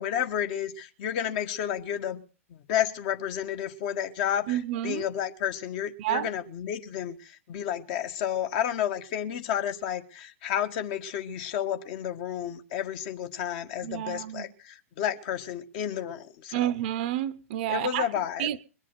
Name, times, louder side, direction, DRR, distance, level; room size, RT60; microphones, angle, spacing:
voice 1, 0.0-2.2 2.5-16.7 17.7-18.5, left 10 dB, 40° left, 1.6 m, -31 dB
voice 2, 4.5-5.0 6.0-6.3 13.8-14.5 16.5-18.1 18.4-18.6, right 12 dB, 45° right, 0.8 m, -29 dB
22.0 x 7.4 x 6.7 m
figure-of-eight pair, 105°, 8 cm